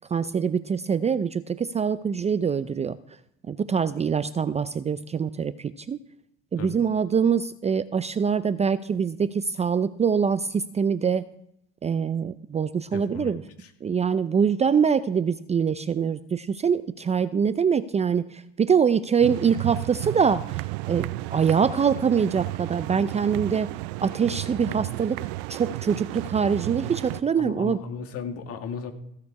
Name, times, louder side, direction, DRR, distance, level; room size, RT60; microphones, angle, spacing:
voice 1, 0.1-3.0 3.5-6.0 6.5-11.2 11.8-13.4 13.8-23.7 24.0-25.2 25.5-27.8, right 6 dB, 20° right, 13 dB, 0.5 m, -24 dB
voice 2, 12.9-13.3 13.6-13.7 27.2-28.9, left 6 dB, 50° left, 6 dB, 2.1 m, -35 dB
sound 1, 19.2-27.2, right 20 dB, 70° right, 0.6 m, -33 dB
15.5 x 6.6 x 4.8 m, 0.75 s
supercardioid pair, 90°, 31 cm